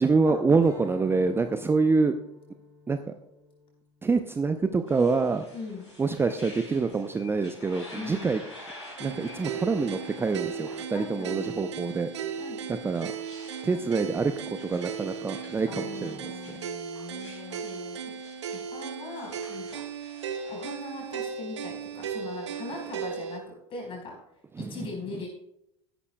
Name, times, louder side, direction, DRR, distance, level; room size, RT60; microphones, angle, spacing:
voice 1, 0.0-2.1 2.9-3.1 4.0-5.5 6.0-8.4 9.0-12.1 12.7-13.1 13.6-16.6 24.6-24.9, right 4 dB, 15° right, 9 dB, 0.6 m, -26 dB
Strum, 0.6-5.3, left 3 dB, 20° left, 2.9 m, -51 dB
sound 1, 4.9-20.5, left 1 dB, 85° left, 4.2 m, -49 dB
voice 2, 5.5-5.9 7.9-8.3 10.9-11.5 12.4-12.6 15.7-18.0 18.5-19.8 20.5-24.1 24.6-25.3, left 3 dB, 35° left, 0 dB, 4.5 m, -40 dB
sound 2, 9.0-23.4, right 7 dB, 70° right, 1.0 m, -36 dB
15.0 x 11.0 x 2.3 m, 0.81 s
figure-of-eight pair, 70°, 15 cm